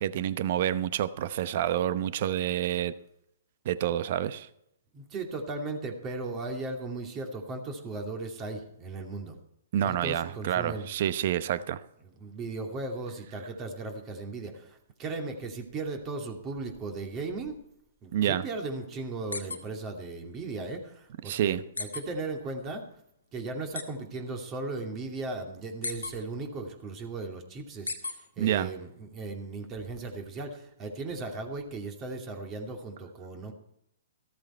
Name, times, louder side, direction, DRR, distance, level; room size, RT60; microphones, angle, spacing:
voice 1, 0.0-2.9 3.6-4.5 9.7-11.8 18.1-18.4 21.2-21.6 28.4-28.7, right 11 dB, 50° right, 15 dB, 0.9 m, -28 dB
voice 2, 4.9-9.4 9.8-10.9 12.2-17.6 18.0-22.8 23.3-33.5, right 3 dB, 25° right, 4 dB, 2.6 m, -37 dB
sound 1, 19.3-19.6 20.0-20.1 21.8-22.0 23.7-23.8 25.8-26.1 27.9-28.1, left 3 dB, 90° left, 1.9 m, -33 dB
14.0 x 13.5 x 4.5 m, 0.76 s
hypercardioid pair, 125°, 0 cm